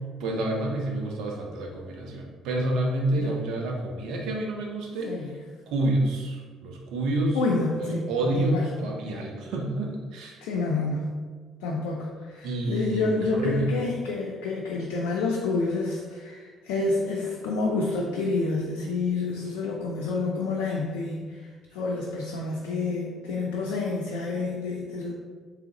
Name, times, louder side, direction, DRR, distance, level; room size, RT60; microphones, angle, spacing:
voice 1, 0.2-5.1 5.7-7.4 7.8-10.4 12.4-13.0 13.4-13.7, right 1 dB, 70° right, 0 dB, 0.7 m, -28 dB
voice 2, 5.1-5.4 7.3-8.7 10.4-11.2 11.6-25.2, left 3 dB, 75° left, -2 dB, 0.4 m, -29 dB
3.6 x 3.4 x 2.9 m, 1.5 s
hypercardioid pair, 50°, 0 cm